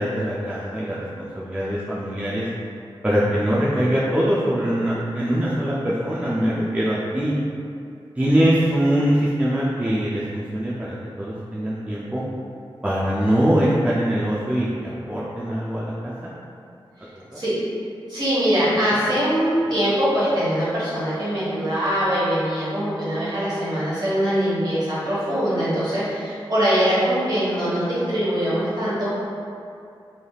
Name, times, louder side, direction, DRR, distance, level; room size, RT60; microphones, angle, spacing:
voice 1, 0.0-2.5 3.0-7.3 8.2-12.2 12.8-16.1 17.3-17.4, equal, 15° right, -8 dB, 0.4 m, -22 dB
voice 2, 18.1-29.1, equal, 45° right, -10 dB, 1.4 m, -22 dB
3.3 x 2.6 x 2.3 m, 2.5 s
wide cardioid pair, 65°, 10 cm